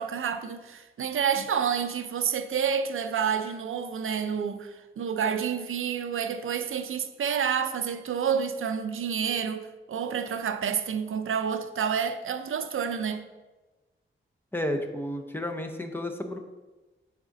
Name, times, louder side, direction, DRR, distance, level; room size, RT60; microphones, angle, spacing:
voice 1, 0.0-13.2, right 7 dB, 80° right, 0.5 m, -29 dB
voice 2, 14.5-16.4, left 1 dB, 10° left, 0.6 m, -32 dB
8.0 x 3.6 x 3.9 m
wide cardioid pair, 135°, 21 cm